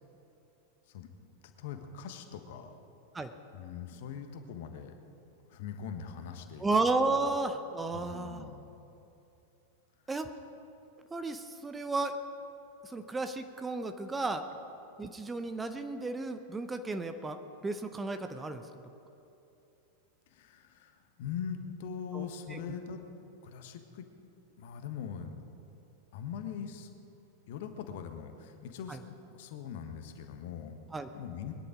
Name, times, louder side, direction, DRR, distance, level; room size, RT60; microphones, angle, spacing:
voice 1, 1.6-2.8 3.5-4.9 5.5-6.7 7.1-7.3 7.9-8.7 10.0-10.2 20.3-23.0 23.4-24.1 24.6-25.3 26.1-26.9 27.5-30.8 31.1-31.5, left 7 dB, 50° left, 6 dB, 1.3 m, -42 dB
voice 2, 6.6-8.5 10.1-10.3 11.1-12.1 12.9-14.4 15.0-18.6 22.1-22.2 22.5-22.6 28.9-29.0 30.9-31.1, right 3 dB, 10° right, 8 dB, 0.8 m, -33 dB
22.0 x 10.5 x 5.1 m, 2.8 s
figure-of-eight pair, 90°, 0 cm